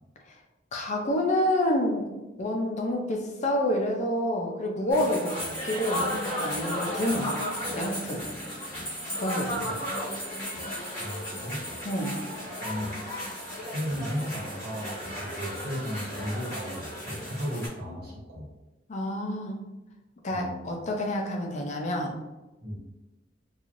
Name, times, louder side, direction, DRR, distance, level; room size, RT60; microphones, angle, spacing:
voice 1, 0.7-2.1 2.4-7.3 7.7-8.2 9.2-9.9 11.8-12.2 18.9-19.6 20.2-22.2, left 1 dB, 40° left, 2 dB, 0.4 m, -28 dB
sound 1, 4.9-17.7, equal, 15° left, 1.2 m, -34 dB
voice 2, 11.0-11.6 12.6-12.9 13.5-18.5 20.3-20.7 22.6-22.8, equal, 60° right, -5 dB, 1.0 m, -35 dB
3.0 x 2.3 x 2.5 m, 1.0 s
head